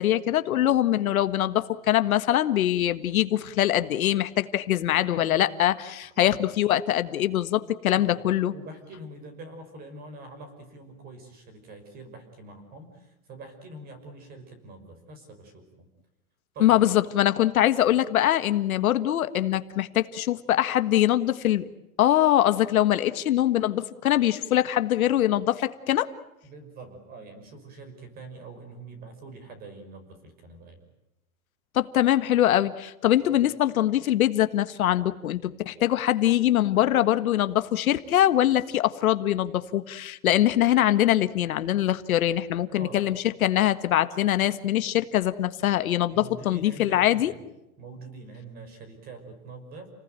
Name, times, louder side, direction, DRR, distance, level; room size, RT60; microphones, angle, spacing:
voice 1, 0.0-8.5 16.6-21.6 22.0-26.1 31.8-35.4 35.7-47.3, left 12 dB, 70° left, 11 dB, 1.7 m, -23 dB
voice 2, 6.0-6.4 7.9-8.1 8.5-15.9 16.5-16.9 26.4-30.8 42.8-43.0 46.1-47.4 47.8-49.9, right 2 dB, 20° right, 9 dB, 5.6 m, -44 dB
30.0 x 20.0 x 9.1 m, 0.91 s
supercardioid pair, 170°, 43 cm